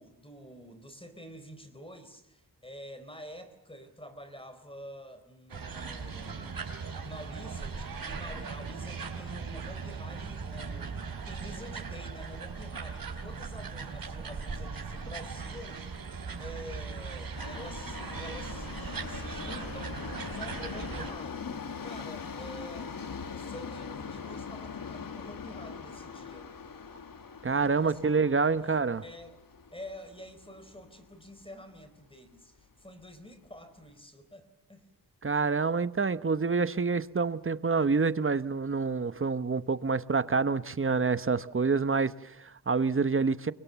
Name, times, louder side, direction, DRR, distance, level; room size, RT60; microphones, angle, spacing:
voice 1, 0.0-6.6 7.0-15.8 16.4-22.9 23.2-26.5 27.7-28.0 28.6-29.4 29.7-34.9, equal, 15° left, 4.0 m, -48 dB
sound 1, 5.5-21.1, right 5 dB, 60° right, 4.5 m, -39 dB
Subway metro underground, 17.4-31.5 31.8-31.9 32.7-32.8 33.1-33.2 33.8-33.9, left 5 dB, 60° left, 2.3 m, -42 dB
voice 2, 27.4-29.0 35.2-43.5, right 4 dB, 30° right, 1.0 m, -27 dB
29.5 x 24.0 x 7.0 m
wide cardioid pair, 95°, 39 cm